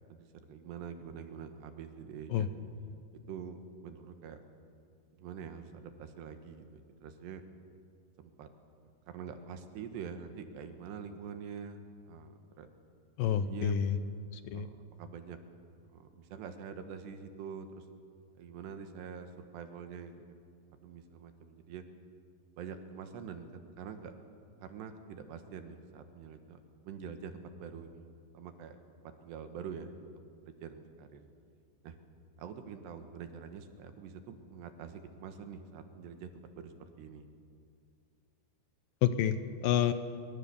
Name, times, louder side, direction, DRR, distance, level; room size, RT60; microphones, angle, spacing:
voice 1, 0.1-2.5 3.3-4.4 5.1-7.4 8.2-8.5 9.1-11.8 12.1-12.7 13.4-13.8 14.5-14.7 15.0-15.4 15.9-17.9 18.4-20.4 20.8-21.8 22.6-24.1 24.6-26.6 26.9-28.8 29.0-30.1 30.5-31.2 31.8-32.0 32.4-37.3, right 6 dB, 75° right, 7 dB, 3.5 m, -45 dB
voice 2, 13.2-14.0 14.5-14.7 39.0-39.9, left 9 dB, 80° left, 11 dB, 2.0 m, -28 dB
24.5 x 24.0 x 7.1 m, 2.3 s
omnidirectional pair, 5.1 m